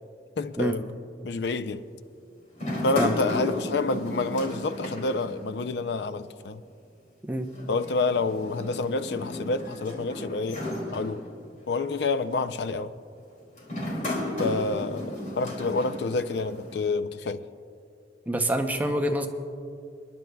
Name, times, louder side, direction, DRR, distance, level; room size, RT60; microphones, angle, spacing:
voice 1, 0.4-0.9 1.2-1.8 2.8-6.6 7.7-10.6 10.9-11.2 11.7-12.9 14.4-17.4, left 3 dB, 70° left, 0.4 m, -28 dB
sound 1, 2.5-5.9 6.2-6.3 7.5-11.7 12.3-12.6 13.6-16.9, left 1 dB, 45° left, 2.5 m, -34 dB
voice 2, 18.3-19.3, right 1 dB, 10° right, 0.6 m, -26 dB
29.5 x 10.5 x 2.3 m
head